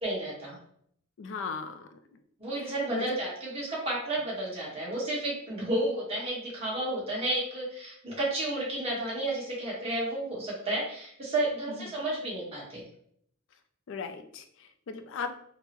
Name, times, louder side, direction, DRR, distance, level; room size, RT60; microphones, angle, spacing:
voice 1, 0.0-0.6 2.4-12.8, right 1 dB, 30° right, -5 dB, 1.2 m, -32 dB
voice 2, 1.2-2.0 2.6-3.2 11.8-11.9 13.9-15.4, left 5 dB, 65° left, 8 dB, 0.4 m, -37 dB
3.6 x 2.0 x 2.9 m, 0.66 s
head